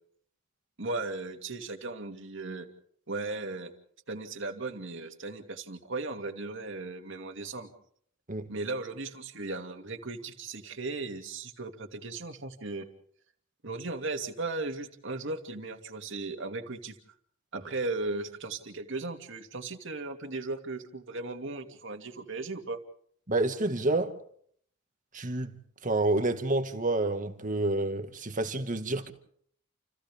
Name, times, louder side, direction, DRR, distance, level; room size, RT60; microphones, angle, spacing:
voice 1, 0.8-2.7 3.1-3.7 4.1-7.7 8.5-12.9 13.6-17.0 17.5-22.8, right 3 dB, 60° right, 2.7 m, -36 dB
voice 2, 23.3-24.2 25.1-25.5 25.8-29.1, right 2 dB, 40° right, 2.0 m, -28 dB
29.5 x 29.0 x 3.7 m
head